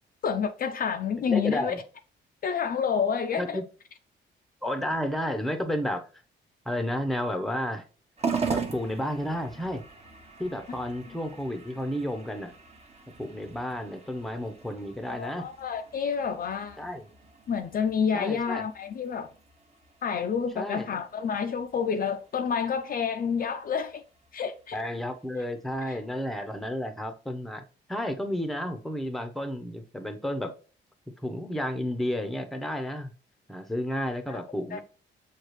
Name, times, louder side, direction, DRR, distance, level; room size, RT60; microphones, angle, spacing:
voice 1, 0.2-1.8 2.4-3.6 15.1-16.8 17.5-19.3 20.0-24.0 24.3-24.8 34.3-34.4 34.7-34.8, left 6 dB, 45° left, 0.5 m, -29 dB
voice 2, 1.3-1.8 3.4-3.6 4.6-6.1 6.7-7.9 8.5-9.8 10.4-12.5 13.2-15.5 16.8-17.1 18.1-18.6 20.5-21.0 24.7-27.6 27.9-30.5 31.2-33.1 33.5-34.8, left 1 dB, ahead, 0.7 m, -32 dB
sound 1, 8.2-26.8, right 5 dB, 30° right, 0.9 m, -41 dB
6.4 x 2.3 x 3.1 m
cardioid pair, 90°, 20 cm